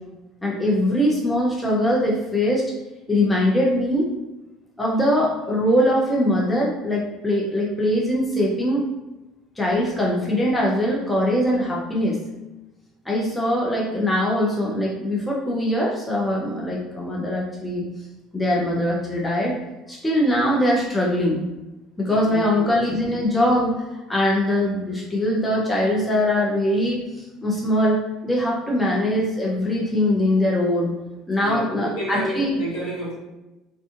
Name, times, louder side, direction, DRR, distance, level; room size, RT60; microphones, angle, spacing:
voice 1, 0.4-2.6 3.1-4.1 4.8-8.8 9.6-12.2 13.1-17.9 18.3-19.6 19.9-21.4 22.0-23.7 24.1-27.0 27.4-30.9 31.3-32.6, left 1 dB, 10° left, -4 dB, 0.6 m, -22 dB
voice 2, 22.0-22.8 23.3-23.4 31.4-33.1, equal, 60° left, -6 dB, 1.0 m, -30 dB
2.5 x 2.4 x 2.4 m, 1.0 s
figure-of-eight pair, 60°, 0 cm